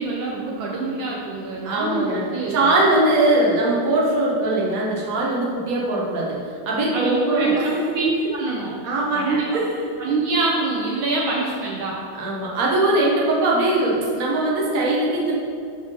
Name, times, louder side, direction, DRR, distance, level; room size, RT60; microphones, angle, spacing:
voice 1, 0.0-2.7 6.9-7.6 7.9-8.7 9.1-9.4 10.0-12.0, right 3 dB, 75° right, -3 dB, 1.4 m, -25 dB
voice 2, 1.6-2.2 2.5-7.8 8.8-9.7 12.2-15.3, right 2 dB, 50° right, -4 dB, 1.3 m, -21 dB
10.0 x 3.5 x 3.7 m, 2.3 s
omnidirectional pair, 2.4 m